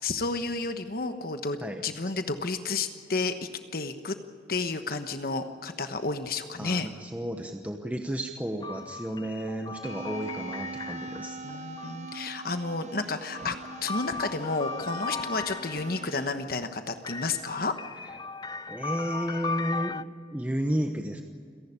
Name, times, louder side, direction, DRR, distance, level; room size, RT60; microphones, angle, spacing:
voice 1, 0.0-4.2 4.5-6.9 11.4-13.6 13.8-17.8, left 3 dB, 60° left, 8 dB, 1.2 m, -31 dB
voice 2, 1.6-2.1 6.6-11.4 18.7-21.2, equal, 10° right, 4 dB, 1.0 m, -32 dB
sound 1, 8.6-12.4 13.1-16.2 17.0-20.0, left 4 dB, 25° left, 0.4 m, -37 dB
sound 2, 9.8-16.3, right 3 dB, 40° right, 0.8 m, -42 dB
29.0 x 11.5 x 10.0 m, 2.2 s
head